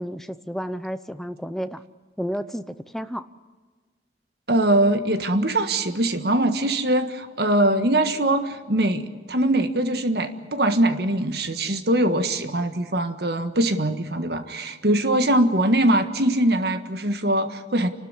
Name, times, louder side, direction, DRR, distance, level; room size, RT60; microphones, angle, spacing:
voice 1, 0.0-1.8 2.2-3.3, equal, ahead, 11 dB, 0.7 m, -31 dB
voice 2, 4.5-17.9, right 1 dB, 60° right, 9 dB, 1.5 m, -22 dB
28.5 x 13.0 x 9.6 m, 1.5 s
head